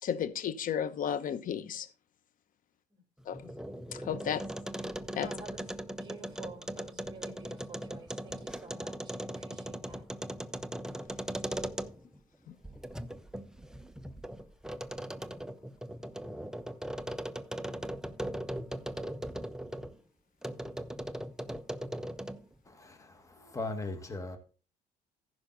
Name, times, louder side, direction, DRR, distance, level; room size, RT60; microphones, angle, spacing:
voice 1, 0.0-1.9 3.3-3.5 3.9-4.4 5.1-5.3 12.5-12.6, left 8 dB, 55° left, 1.0 m, -33 dB
sound 1, 3.2-12.2 12.6-19.9 20.4-22.5, right 1 dB, 5° right, 0.6 m, -39 dB
voice 2, 5.2-5.7 6.0-10.0, right 4 dB, 25° right, 4.5 m, -51 dB
voice 3, 22.7-24.4, left 2 dB, 20° left, 1.8 m, -39 dB
15.0 x 5.7 x 4.0 m
cardioid pair, 110°, 17 cm